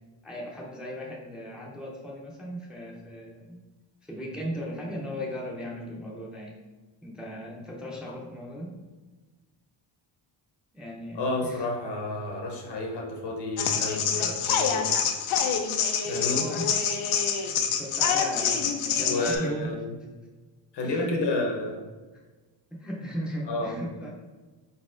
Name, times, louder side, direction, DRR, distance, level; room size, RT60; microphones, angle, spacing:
voice 1, 0.2-3.6 4.0-6.6 7.0-8.8 10.7-11.7 14.1-14.5 16.0-16.8 17.3-19.8 20.8-21.2 22.1-22.2 22.7-24.1, equal, ahead, -3 dB, 0.5 m, -37 dB
voice 2, 11.1-14.9 16.1-16.5 19.0-19.9 20.7-21.8 23.5-23.7, left 2 dB, 60° left, 1 dB, 0.9 m, -30 dB
sound 1, 13.6-19.4, left 7 dB, 90° left, 0.6 m, -26 dB
4.1 x 4.0 x 2.5 m, 1.3 s
cardioid pair, 125°, 47 cm